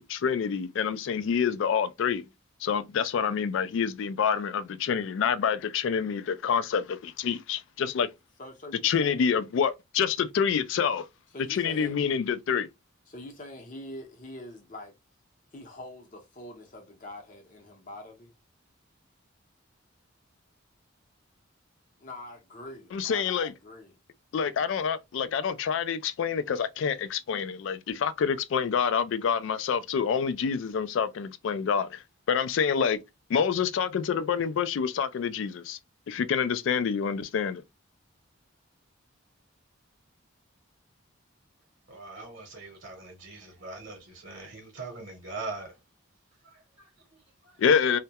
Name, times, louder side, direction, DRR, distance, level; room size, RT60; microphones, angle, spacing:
voice 1, 0.0-2.2 2.6-8.1 8.8-11.1 11.5-12.7 22.9-23.5 24.3-32.0 32.3-33.0 33.3-35.8 36.1-37.6 47.6-48.0, left 7 dB, 65° left, 0.3 m, -27 dB
voice 2, 8.4-9.3 11.3-12.0 13.1-14.9 15.5-18.3 22.0-24.0, left 1 dB, 40° left, 0.6 m, -44 dB
voice 3, 41.9-45.8 46.4-47.6, right 3 dB, 55° right, 0.8 m, -42 dB
2.2 x 2.1 x 2.7 m
head